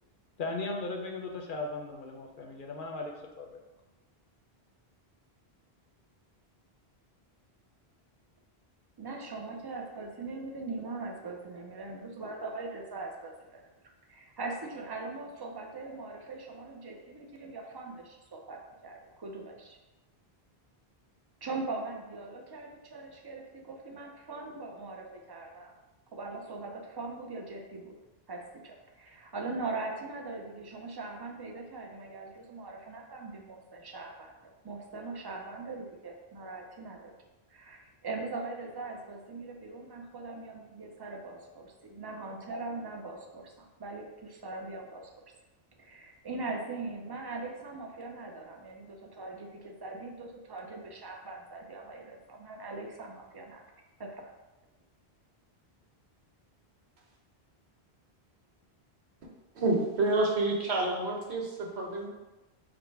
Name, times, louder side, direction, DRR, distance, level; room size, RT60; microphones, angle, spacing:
voice 1, 0.4-3.6, left 3 dB, 60° left, 2 dB, 0.7 m, -37 dB
voice 2, 9.0-13.6 14.1-19.8 21.4-25.7 26.1-28.0 28.3-34.3 34.6-37.1 37.5-45.1 45.8-53.6 54.0-54.2, right 3 dB, 30° right, 1 dB, 0.4 m, -41 dB
voice 3, 59.5-62.1, right 2 dB, 85° right, 0 dB, 1.1 m, -28 dB
5.1 x 2.1 x 4.5 m, 1.1 s
omnidirectional pair, 1.1 m